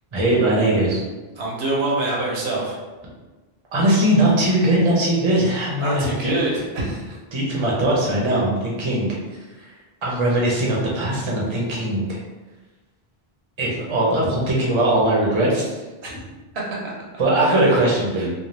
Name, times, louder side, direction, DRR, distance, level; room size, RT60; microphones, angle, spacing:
voice 1, 0.1-1.0 3.7-6.3 7.3-9.2 9.5-12.2 13.6-15.7 17.2-18.3, right 1 dB, 35° right, -4 dB, 0.6 m, -20 dB
voice 2, 1.4-2.8 5.8-7.2 16.0-16.1 16.5-16.9 17.4-17.8 18.2-18.3, right 2 dB, 85° right, -3 dB, 1.0 m, -26 dB
2.6 x 2.2 x 3.1 m, 1.2 s
omnidirectional pair, 1.0 m